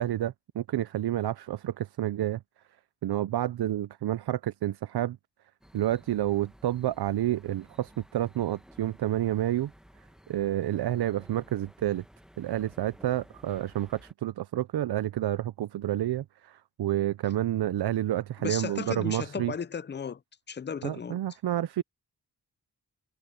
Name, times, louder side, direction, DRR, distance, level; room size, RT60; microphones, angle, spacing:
voice 1, 0.0-2.4 3.0-5.2 5.7-9.7 10.3-12.0 12.4-19.5 20.8-21.8, right 13 dB, 85° right, 0.6 m, -29 dB
sound 1, 5.6-14.1, equal, ahead, 1.3 m, -55 dB
voice 2, 18.4-20.2 20.5-21.2, left 6 dB, 30° left, 0.5 m, -35 dB
wide cardioid pair, 110°, 38 cm